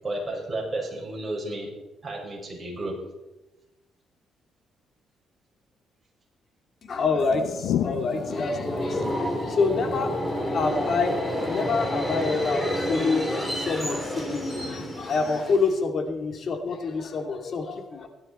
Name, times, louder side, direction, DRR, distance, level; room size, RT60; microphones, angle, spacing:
voice 1, 0.0-1.7 2.0-3.0, right 1 dB, 25° right, -2 dB, 5.8 m, -32 dB
voice 2, 6.9-11.2 11.4-18.1, left 4 dB, 55° left, 5 dB, 2.3 m, -27 dB
sound 1, 7.3-15.7, left 10 dB, 85° left, 0.8 m, -37 dB
Subway metro underground, 8.0-15.8, equal, 5° left, 4.0 m, -29 dB
17.0 x 11.0 x 4.3 m, 1.0 s
cardioid pair, 90°, 0 cm